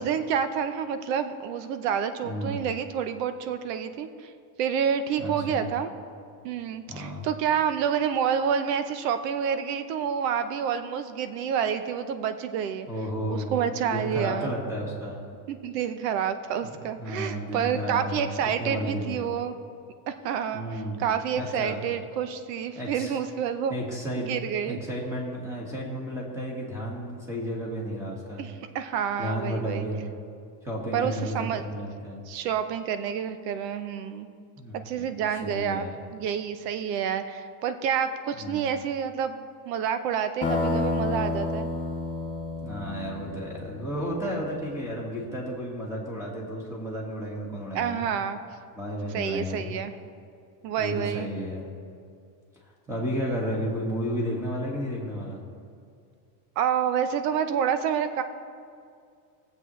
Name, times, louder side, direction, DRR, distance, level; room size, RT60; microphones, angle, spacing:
voice 1, 0.0-4.3 4.6-5.9 6.4-12.9 13.3-14.5 15.5-19.5 20.1-20.6 21.0-23.7 24.1-24.8 28.4-29.9 30.9-31.6 32.3-34.3 34.9-35.9 36.1-41.7 47.7-48.4 49.1-49.9 50.6-51.3 56.6-58.2, right 8 dB, 75° right, 10 dB, 0.9 m, -28 dB
voice 2, 2.2-2.6 5.2-5.7 6.9-7.3 12.9-15.2 16.6-19.3 20.5-21.0 21.3-21.8 22.8-23.2 23.7-24.3 24.6-28.5 29.2-30.1 30.6-32.2 34.6-36.0 38.4-38.7 42.6-48.1 48.7-49.7 50.8-51.7 52.9-55.4, equal, 5° right, -3 dB, 1.7 m, -33 dB
sound 1, 40.4-44.2, left 2 dB, 15° left, 2.0 m, -30 dB
18.5 x 7.6 x 3.2 m, 2.3 s
cardioid pair, 155°, 49 cm